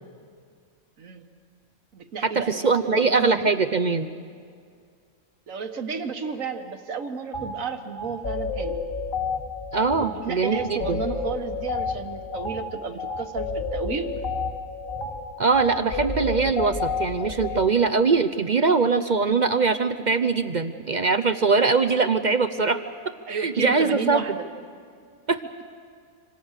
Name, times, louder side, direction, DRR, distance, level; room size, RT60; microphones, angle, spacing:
voice 1, 1.0-1.3 1.9-3.5 5.5-8.8 10.0-14.1 23.3-24.5, right 5 dB, 65° right, 7 dB, 1.8 m, -32 dB
voice 2, 2.2-4.1 9.7-11.0 15.4-22.8 23.3-24.2 25.3-25.4, right 4 dB, 45° right, 8 dB, 0.6 m, -22 dB
sound 1, 7.3-7.5 8.0-17.7, left 4 dB, 40° left, 2.8 m, -30 dB
26.0 x 26.0 x 6.6 m, 2.2 s
omnidirectional pair, 1.5 m